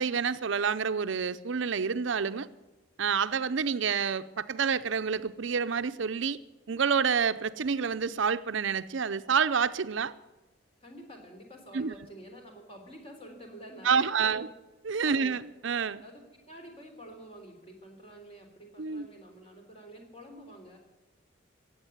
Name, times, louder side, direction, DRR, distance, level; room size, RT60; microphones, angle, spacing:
voice 1, 0.0-2.5 3.0-6.4 6.7-10.1 11.7-11.9 13.8-14.5 14.8-16.0 18.8-19.1, right 6 dB, 70° right, 0.6 m, -28 dB
voice 2, 10.8-14.5 15.0-15.4 16.0-20.8, equal, 30° left, 3.5 m, -48 dB
15.5 x 8.8 x 9.3 m
head